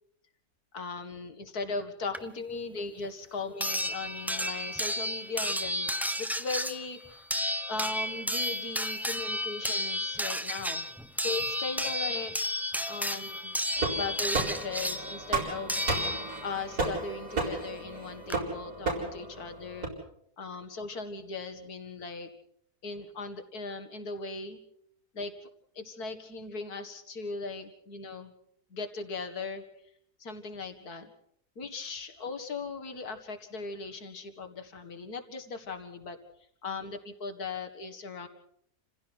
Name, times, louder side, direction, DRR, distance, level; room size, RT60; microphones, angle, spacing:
voice 1, 0.7-5.9 6.2-7.3 7.7-10.9 11.2-12.4 12.9-13.5 13.9-15.8 16.4-19.9 20.4-22.3 22.8-24.6 25.1-25.3 25.8-28.3 28.7-29.6 30.2-31.1 31.6-36.2 36.6-38.3, left 4 dB, 70° left, 8 dB, 2.4 m, -38 dB
sound 1, 2.1-2.2 3.6-16.6 17.9-18.0 18.3-18.4, equal, ahead, 0.6 m, -32 dB
sound 2, 13.8-19.9, right 3 dB, 75° right, 5.0 m, -34 dB
28.5 x 16.0 x 6.2 m, 0.68 s
omnidirectional pair, 1.7 m